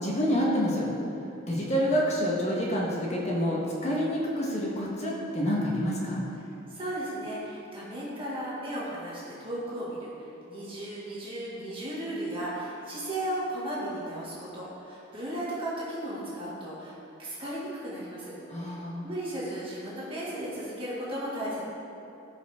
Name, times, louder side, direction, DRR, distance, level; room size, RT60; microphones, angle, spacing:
voice 1, 0.0-0.9 1.5-6.2 18.5-19.0, equal, 35° left, -4 dB, 1.4 m, -28 dB
voice 2, 6.4-21.6, right 1 dB, 25° right, -8 dB, 2.1 m, -35 dB
16.0 x 5.7 x 3.6 m, 2.8 s
head